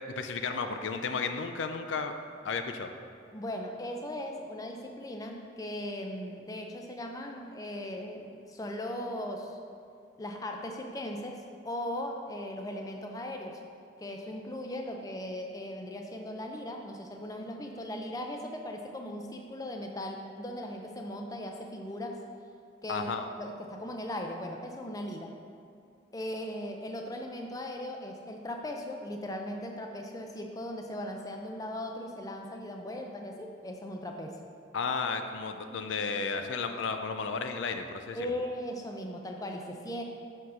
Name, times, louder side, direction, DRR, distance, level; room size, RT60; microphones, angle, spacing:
voice 1, 0.2-2.1 2.4-2.9 22.9-23.3 34.7-38.2, left 4 dB, 80° left, 7 dB, 0.4 m, -33 dB
voice 2, 3.3-9.6 10.2-13.6 14.0-22.2 22.8-25.3 26.1-34.4 38.2-40.0, left 1 dB, 20° left, 2 dB, 0.5 m, -38 dB
6.3 x 4.4 x 5.6 m, 2.4 s
head